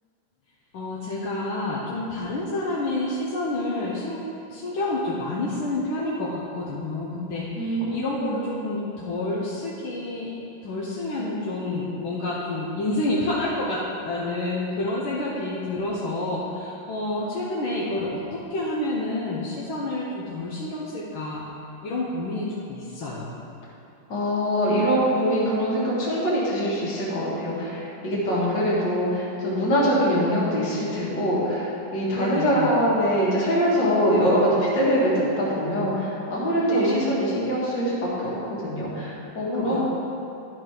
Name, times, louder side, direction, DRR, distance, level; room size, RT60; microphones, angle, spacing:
voice 1, 0.7-4.2 4.5-10.3 10.6-21.4 21.8-23.4 32.1-32.7 36.6-37.0 39.4-39.8, left 2 dB, 80° left, -6 dB, 1.8 m, -29 dB
voice 2, 7.6-8.5 24.1-38.3 38.6-39.8, equal, 60° left, -6 dB, 2.4 m, -23 dB
11.5 x 4.5 x 4.9 m, 2.7 s
omnidirectional pair, 2.2 m